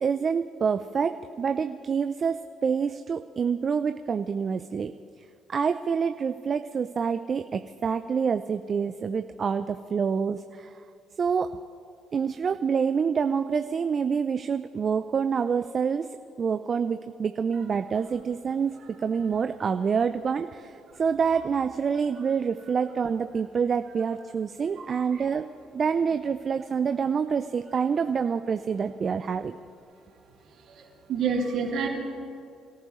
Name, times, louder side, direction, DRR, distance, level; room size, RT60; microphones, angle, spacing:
voice 1, 0.0-4.9 5.5-10.7 11.2-11.5 12.1-16.1 16.4-25.4 25.7-29.5, right 6 dB, 45° right, 10 dB, 0.5 m, -27 dB
voice 2, 24.8-25.2 30.6-30.8 31.1-31.9, right 5 dB, 65° right, -2 dB, 3.5 m, -29 dB
26.5 x 14.5 x 3.2 m, 2.4 s
hypercardioid pair, 55°, 0 cm